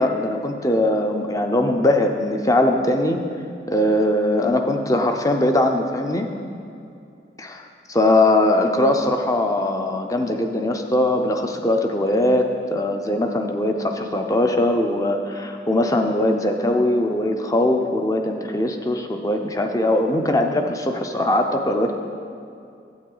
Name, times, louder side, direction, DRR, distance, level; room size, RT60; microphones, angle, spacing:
voice 1, 0.0-3.2 3.7-6.3 7.4-22.0, left 1 dB, 20° left, 4 dB, 0.5 m, -21 dB
9.4 x 7.9 x 3.9 m, 2.5 s
head